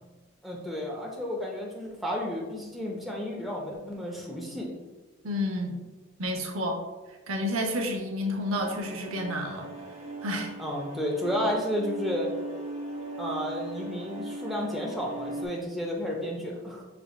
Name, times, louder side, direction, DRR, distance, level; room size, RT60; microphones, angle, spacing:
voice 1, 0.4-4.7 10.6-12.3 13.2-16.8, equal, ahead, -2 dB, 0.5 m, -32 dB
voice 2, 5.2-5.8 6.2-6.8 7.3-9.7 10.2-10.5, left 1 dB, 75° right, 2 dB, 0.7 m, -30 dB
sound 1, 8.5-15.5, right 2 dB, 30° right, 0.8 m, -39 dB
5.9 x 3.4 x 2.3 m, 1.2 s
head